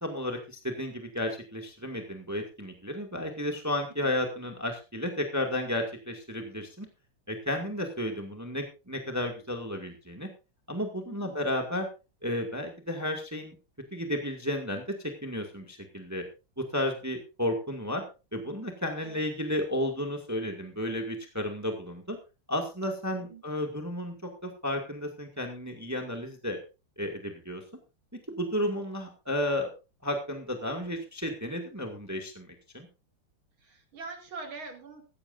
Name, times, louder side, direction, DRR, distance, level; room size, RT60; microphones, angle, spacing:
voice 1, 0.0-6.9 7.3-10.3 10.7-11.9 12.2-13.6 13.9-16.2 16.6-18.0 18.3-22.2 22.5-24.1 24.4-26.6 27.0-27.6 28.4-29.7 30.0-32.5 32.7-32.9, left 1 dB, 10° right, 3 dB, 2.0 m, -32 dB
voice 2, 33.6-35.0, right 3 dB, 65° right, 4 dB, 3.6 m, -43 dB
15.5 x 15.0 x 2.6 m, 0.30 s
omnidirectional pair, 2.4 m